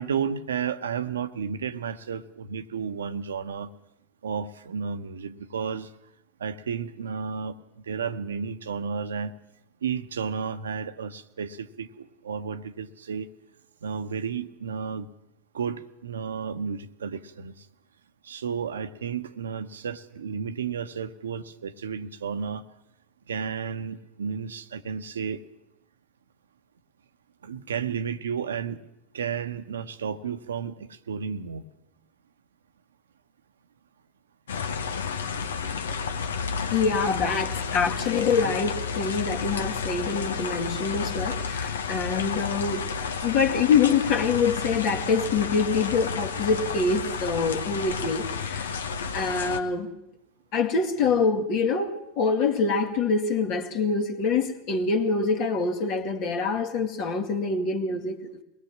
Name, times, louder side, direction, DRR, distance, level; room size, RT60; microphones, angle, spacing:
voice 1, 0.0-3.7 4.2-5.9 6.4-9.3 9.8-13.3 13.8-15.1 15.5-17.7 18.2-22.6 23.3-25.4 27.4-28.8 29.1-31.6, right 6 dB, 80° right, 1.0 m, -32 dB
sound 1, 34.5-49.6, left 6 dB, 80° left, 1.1 m, -31 dB
voice 2, 36.7-42.9 43.2-48.7 49.1-49.9 50.5-58.4, left 5 dB, 50° left, 2.2 m, -25 dB
22.5 x 18.5 x 7.4 m
hypercardioid pair, 90°, 0 cm